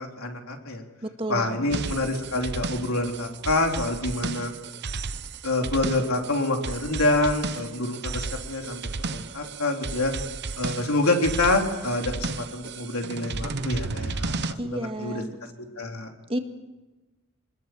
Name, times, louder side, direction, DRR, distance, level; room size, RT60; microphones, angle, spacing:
voice 1, 0.0-0.8 1.3-4.5 5.4-10.1 10.6-15.2 15.8-16.1, left 2 dB, 75° left, 2 dB, 3.5 m, -27 dB
voice 2, 1.0-1.9 14.6-15.4 16.3-16.4, right 1 dB, 25° right, 5 dB, 1.8 m, -32 dB
sound 1, 1.7-14.5, right 4 dB, 50° right, 0.9 m, -33 dB
25.5 x 21.0 x 7.8 m, 1.2 s
head